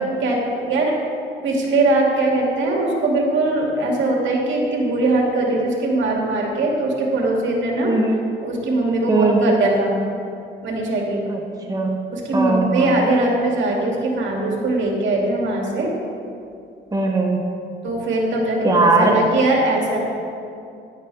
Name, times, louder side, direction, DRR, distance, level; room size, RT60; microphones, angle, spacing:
voice 1, 0.2-1.0 1.4-8.0 8.4-10.0 10.6-11.3 12.1-15.9 17.8-20.0, right 2 dB, 70° right, -2 dB, 2.6 m, -21 dB
voice 2, 7.8-8.2 9.1-9.4 11.3-11.4 11.7-12.1 12.3-13.0 16.9-17.5 18.6-19.2, right 3 dB, 20° right, 1 dB, 1.1 m, -19 dB
12.5 x 11.0 x 3.5 m, 2.5 s
cardioid pair, 90°, 20 cm